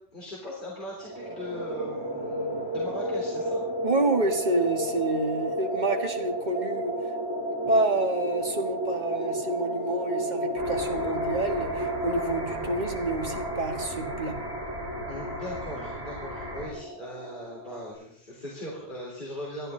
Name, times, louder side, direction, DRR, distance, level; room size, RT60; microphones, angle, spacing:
voice 1, 0.1-3.6 15.1-19.7, equal, 45° left, -5 dB, 4.0 m, -39 dB
sound 1, 1.0-17.9, right 1 dB, 10° right, 4.8 m, -32 dB
voice 2, 3.8-7.0 7.7-14.4, right 2 dB, 40° right, 4 dB, 1.8 m, -28 dB
sound 2, 10.6-16.7, equal, 55° right, 4.4 m, -39 dB
21.0 x 13.5 x 3.8 m, 0.64 s
omnidirectional pair, 1.2 m